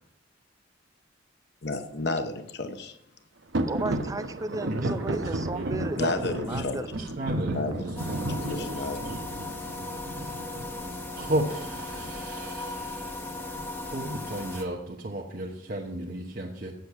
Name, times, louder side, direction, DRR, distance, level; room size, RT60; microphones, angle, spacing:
voice 1, 1.6-3.0 6.0-6.9 7.5-7.9 8.4-9.0, left 3 dB, 60° left, 8 dB, 0.9 m, -31 dB
sound 1, 3.5-12.1, right 1 dB, 80° right, 0.9 m, -33 dB
voice 2, 3.7-6.9, right 2 dB, 20° right, 11 dB, 0.5 m, -34 dB
voice 3, 6.0-6.6 7.2-8.8 11.2-13.2 13.8-16.7, right 1 dB, 50° right, -1 dB, 1.0 m, -34 dB
sound 2, 8.0-14.6, left 2 dB, 10° left, 1.1 m, -37 dB
8.3 x 7.9 x 5.8 m, 0.76 s
head